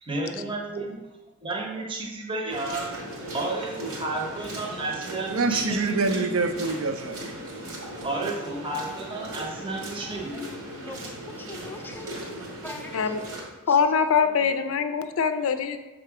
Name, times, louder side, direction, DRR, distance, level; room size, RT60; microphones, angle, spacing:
voice 1, 0.0-1.0 1.4-2.9 3.3-6.3 8.0-10.5, right 2 dB, 25° right, 0 dB, 0.8 m, -32 dB
sound 1, 2.5-13.4, right 1 dB, 90° right, 1.9 m, -38 dB
voice 2, 5.3-7.3, right 3 dB, 70° right, 7 dB, 0.6 m, -26 dB
voice 3, 10.8-13.2 13.7-14.6, left 1 dB, 10° left, 3 dB, 0.5 m, -43 dB
voice 4, 13.7-15.8, left 6 dB, 70° left, 9 dB, 0.4 m, -23 dB
6.8 x 3.7 x 4.8 m, 1.1 s
head